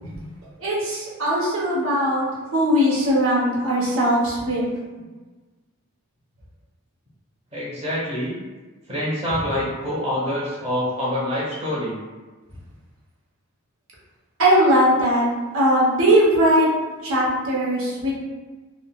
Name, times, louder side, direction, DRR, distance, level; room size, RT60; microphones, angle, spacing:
voice 1, 0.6-2.2 2.5-4.8 14.4-15.3 15.5-18.1, equal, 70° right, -5 dB, 0.9 m, -19 dB
voice 2, 7.5-8.4 8.9-12.0, equal, 30° right, -7 dB, 1.0 m, -26 dB
3.6 x 2.0 x 2.3 m, 1.3 s
head